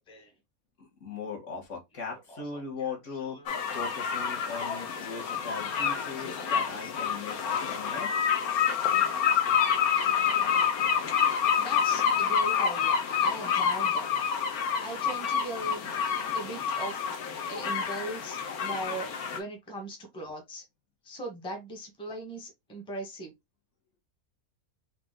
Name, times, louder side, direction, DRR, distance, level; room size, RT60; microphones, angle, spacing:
voice 1, 0.8-3.4 3.7-8.3, left 5 dB, 55° left, 1.7 m, -39 dB
voice 2, 1.9-3.5 4.1-4.3 4.8-5.8 6.1-7.9 8.4-9.4 11.6-14.1 14.8-15.9 16.3-17.0 17.5-20.6 21.0-23.3, right 1 dB, 5° left, 0.9 m, -41 dB
sound 1, 3.5-19.4, left 7 dB, 75° left, 1.3 m, -28 dB
4.2 x 2.8 x 3.6 m
omnidirectional pair, 1.6 m